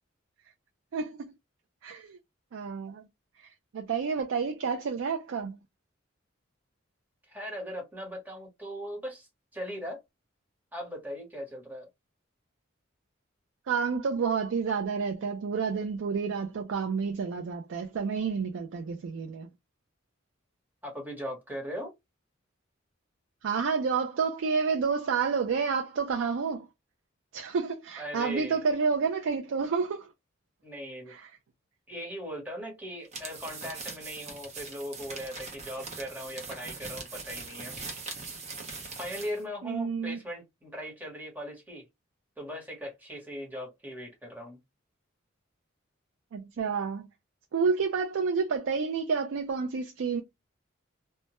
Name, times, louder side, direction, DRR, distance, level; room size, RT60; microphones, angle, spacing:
voice 1, 0.9-1.3 1.8-2.2 2.5-3.0 3.4-5.6 13.7-19.5 23.4-26.7 27.3-30.1 31.1-31.3 39.6-40.2 46.3-47.1 47.5-50.2, right 5 dB, 70° right, 0.4 m, -29 dB
voice 2, 7.3-10.0 10.7-11.9 20.8-21.9 28.0-28.6 30.6-31.1 31.9-37.7 39.0-41.8 42.4-44.6, equal, 10° right, 1.0 m, -39 dB
sound 1, 33.0-39.4, right 4 dB, 35° right, 0.6 m, -41 dB
2.1 x 2.1 x 2.8 m
head